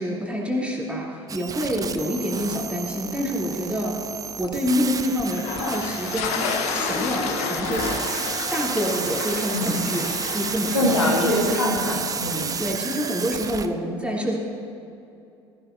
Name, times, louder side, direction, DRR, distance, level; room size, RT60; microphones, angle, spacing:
voice 1, 0.0-4.0 4.4-7.9 8.5-11.0 11.3-11.5 12.6-14.4, equal, 10° right, -4 dB, 3.2 m, -27 dB
sound 1, 1.3-13.7, right 6 dB, 25° right, 0.6 m, -31 dB
sound 2, 5.3-12.6, left 5 dB, 55° left, 1.2 m, -31 dB
voice 2, 9.5-10.1 10.7-12.6, left 1 dB, 90° left, -2 dB, 1.8 m, -24 dB
16.5 x 15.0 x 2.7 m, 2.6 s
figure-of-eight pair, 65°, 14 cm